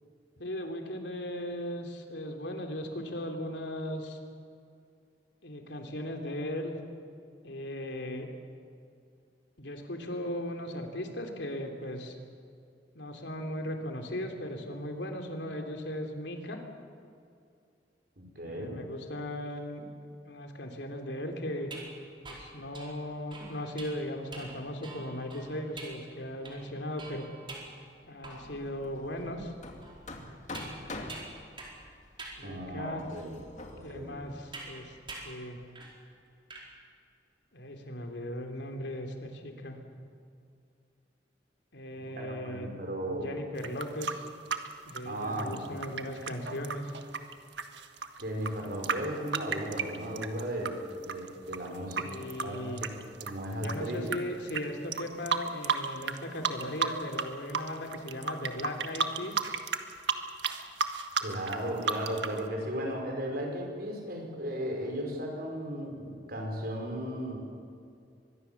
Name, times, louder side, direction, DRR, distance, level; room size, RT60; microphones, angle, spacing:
voice 1, 0.4-4.2 5.4-6.8 7.4-8.3 9.6-12.2 12.9-16.6 18.4-19.9 20.2-21.7 22.3-27.2 28.1-29.5 32.4-33.0 33.8-34.9 35.2-35.6 37.5-39.8 41.7-42.7 43.2-44.3 44.8-46.9 51.9-52.8 53.6-59.5, left 1 dB, 85° left, 3 dB, 3.3 m, -37 dB
voice 2, 18.2-18.8 32.4-33.4 33.7-34.2 42.2-43.3 43.6-43.7 45.1-45.7 48.2-54.2 61.2-67.4, equal, 60° right, 2 dB, 5.5 m, -36 dB
sound 1, 21.6-28.7 29.2-29.3 29.8-31.9 32.2-32.4 33.1-33.2 34.5-34.8 35.1-35.4 35.8-36.0 36.3-36.7, right 2 dB, 30° right, 4.6 m, -46 dB
Hammer, 28.2-35.1, left 2 dB, 45° left, 2.5 m, -46 dB
sound 2, 43.6-50.7 51.0-54.2 54.5-54.6 54.9-56.2 56.4-57.2 57.5-62.4, right 5 dB, 85° right, 1.5 m, -32 dB
24.5 x 21.0 x 7.3 m, 2.4 s
head